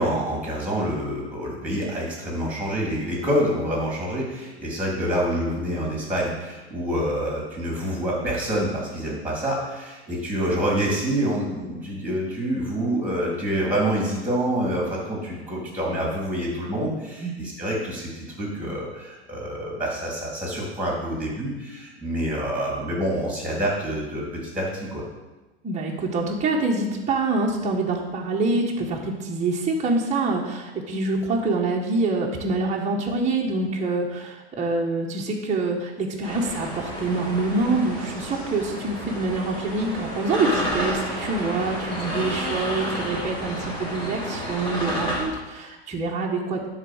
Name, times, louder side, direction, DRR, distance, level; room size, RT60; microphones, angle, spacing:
voice 1, 0.0-25.0, equal, 5° right, -3 dB, 3.5 m, -27 dB
voice 2, 25.6-46.7, right 3 dB, 20° right, -2 dB, 1.5 m, -26 dB
Forest windy creaking, 36.2-45.2, equal, 15° left, 3.2 m, -31 dB
11.0 x 4.2 x 6.6 m, 1.1 s
hypercardioid pair, 105°, 33 cm